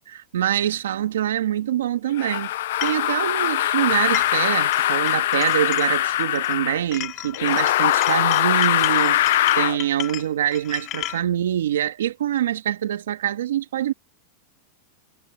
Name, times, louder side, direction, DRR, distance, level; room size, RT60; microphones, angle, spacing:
voice 1, 0.1-2.5 2.8-13.9, right 11 dB, 90° right, 1.9 m, -25 dB
sound 1, 2.2-6.8 7.3-9.8, left 14 dB, 75° left, 0.5 m, -21 dB
sound 2, 2.8-3.0 3.9-4.5 4.7-6.6 6.9-11.2, left 15 dB, 40° left, 2.6 m, -33 dB
supercardioid pair, 130°, 0 cm